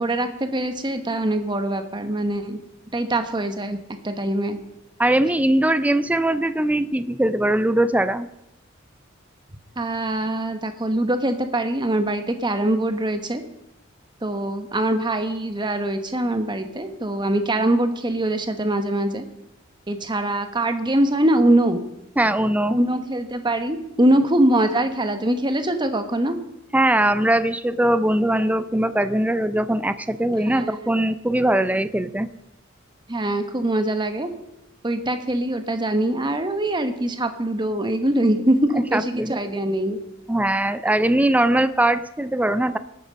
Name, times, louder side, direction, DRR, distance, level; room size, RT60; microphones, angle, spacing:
voice 1, 0.0-2.6 2.9-3.8 4.0-4.6 9.8-13.4 14.2-19.2 19.9-21.8 22.7-26.4 30.5-30.9 33.1-34.3 34.8-40.0, right 1 dB, 25° right, 8 dB, 1.2 m, -23 dB
voice 2, 5.0-8.3 22.2-22.8 26.7-32.3 38.9-39.4 40.3-42.8, right 1 dB, 5° right, 12 dB, 0.4 m, -21 dB
19.0 x 9.2 x 5.2 m, 0.88 s
head